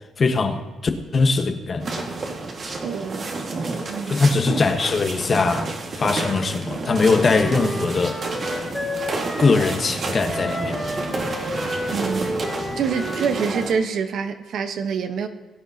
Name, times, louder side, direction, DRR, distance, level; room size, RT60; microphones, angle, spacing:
voice 1, 0.2-2.1 4.1-8.5 9.4-11.1, left 4 dB, 40° left, 6 dB, 1.2 m, -21 dB
sound 1, 1.8-13.7, right 3 dB, 45° right, 1.7 m, -30 dB
voice 2, 2.8-3.3 3.9-4.2 11.9-12.4 12.8-15.3, right 6 dB, 70° right, 8 dB, 1.0 m, -26 dB
Wind instrument woodwind instrument, 6.8-9.8 10.3-13.8, left 1 dB, 5° left, 2.2 m, -31 dB
18.5 x 8.9 x 2.8 m, 1.3 s
cardioid pair, 90°, 0 cm